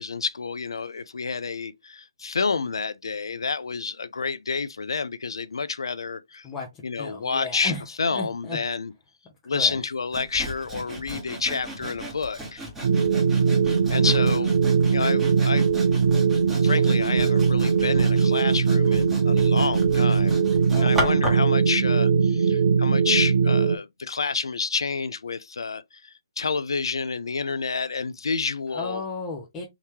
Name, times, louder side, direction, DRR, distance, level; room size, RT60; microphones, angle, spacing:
voice 1, 0.0-6.5 6.8-7.7 8.0-8.9 9.5-12.6 13.6-14.6 14.9-15.7 16.6-20.4 20.8-29.0, left 4 dB, 70° left, 0.4 m, -29 dB
voice 2, 6.4-7.8 8.1-8.6 9.5-9.8 20.7-21.3 28.7-29.7, left 3 dB, 15° left, 0.8 m, -34 dB
Sawing, 10.1-21.5, right 1 dB, 10° right, 1.3 m, -35 dB
sound 1, 12.8-23.8, right 5 dB, 50° right, 0.4 m, -20 dB
3.6 x 2.7 x 3.0 m
figure-of-eight pair, 140°, 3 cm